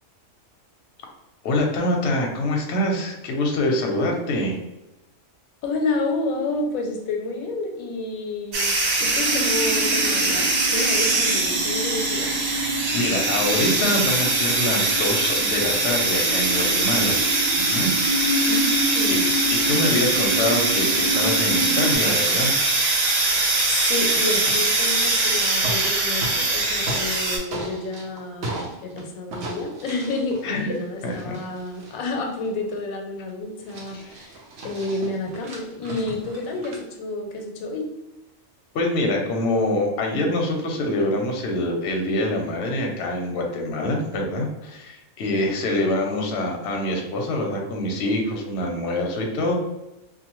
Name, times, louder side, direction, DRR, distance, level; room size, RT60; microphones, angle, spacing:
voice 1, 1.4-4.6 12.9-17.2 17.6-17.9 19.5-22.6 30.4-30.7 31.0-31.3 33.9-34.0 38.7-49.6, left 1 dB, 60° left, 1 dB, 0.8 m, -25 dB
voice 2, 5.6-12.4 18.5-19.3 23.3-34.4 34.6-37.9, left 2 dB, 90° left, 2 dB, 1.0 m, -30 dB
sound 1, 8.5-27.4, right 2 dB, 85° right, 1.2 m, -22 dB
sound 2, 9.2-22.0, equal, 40° right, 0.9 m, -30 dB
sound 3, 24.2-25.2 25.5-27.2 27.5-29.0 29.3-32.8 33.3-33.4 33.6-36.8, right 1 dB, 65° right, 1.0 m, -36 dB
2.7 x 2.3 x 2.9 m, 0.95 s
omnidirectional pair, 1.4 m